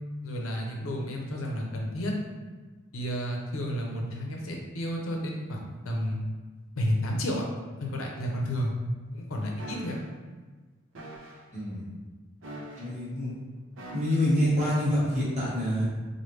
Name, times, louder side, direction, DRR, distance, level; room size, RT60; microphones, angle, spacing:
voice 1, 0.2-2.1 2.9-6.2 6.8-7.4 7.8-8.7 9.1-10.0, equal, 90° left, 0 dB, 0.6 m, -31 dB
sound 1, 9.6-10.0 10.9-11.4 12.4-13.0 13.8-14.3 15.1-15.3, right 1 dB, 65° right, 0.5 m, -43 dB
voice 2, 11.5-11.9 12.8-13.3 13.9-15.8, equal, 35° right, -7 dB, 1.2 m, -26 dB
3.2 x 2.2 x 3.0 m, 1.3 s
head